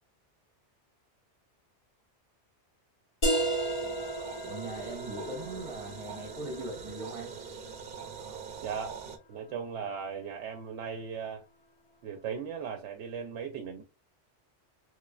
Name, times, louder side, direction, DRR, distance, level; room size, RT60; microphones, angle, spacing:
sound 1, 3.2-8.6, right 1 dB, 40° left, 1.5 m, -35 dB
sound 2, 3.3-9.2, right 6 dB, 55° right, 0.7 m, -43 dB
voice 1, 4.4-7.3, right 1 dB, 30° right, 1.0 m, -40 dB
voice 2, 8.6-9.0 9.3-11.4 12.0-13.8, right 6 dB, 85° right, 0.9 m, -37 dB
3.4 x 3.0 x 2.3 m
omnidirectional pair, 1.2 m